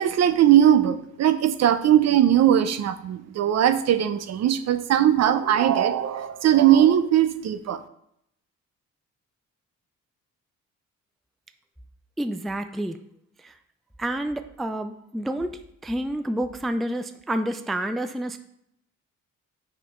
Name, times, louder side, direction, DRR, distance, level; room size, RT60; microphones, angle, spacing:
voice 1, 0.0-7.8, right 10 dB, 60° right, 12 dB, 0.6 m, -19 dB
voice 2, 12.2-13.0 13.4-13.6 14.0-18.4, right 1 dB, ahead, 8 dB, 0.3 m, -29 dB
6.7 x 5.3 x 3.2 m, 0.75 s
cardioid pair, 90°, 30 cm